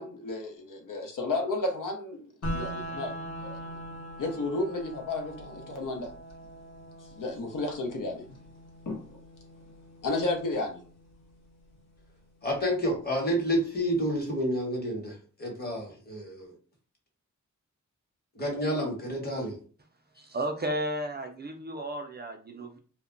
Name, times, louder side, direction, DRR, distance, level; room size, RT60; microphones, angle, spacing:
voice 1, 0.0-3.1 3.4-3.6 4.2-6.1 7.2-8.3 8.9-9.0 10.0-10.8, left 2 dB, 80° left, 2 dB, 0.7 m, -32 dB
sound 1, 2.4-12.4, equal, 55° left, 1.0 m, -42 dB
voice 2, 12.4-16.5 18.3-19.6, equal, 30° left, 0 dB, 1.0 m, -29 dB
voice 3, 20.2-22.8, right 1 dB, 35° right, 4 dB, 0.4 m, -33 dB
2.2 x 2.1 x 3.7 m, 0.40 s
wide cardioid pair, 145°, 31 cm